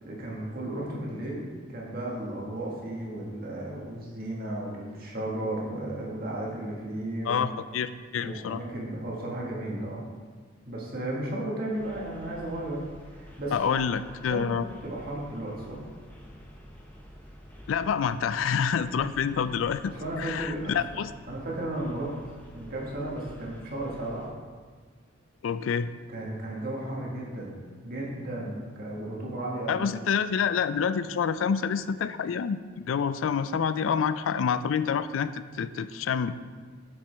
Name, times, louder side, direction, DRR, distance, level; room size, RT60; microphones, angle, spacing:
voice 1, 0.0-7.4 8.2-10.0 10.7-12.8 13.1-13.7 14.3-15.8 20.0-21.0 21.3-22.1 22.5-24.3 26.1-29.9, right 1 dB, 50° right, -3 dB, 1.7 m, -34 dB
voice 2, 7.3-8.6 13.5-14.7 17.7-21.1 25.4-25.9 29.7-36.3, left 7 dB, 80° left, 13 dB, 0.4 m, -27 dB
sound 1, 11.7-24.3, equal, 10° left, 0.8 m, -49 dB
8.0 x 6.7 x 3.4 m, 1.5 s
head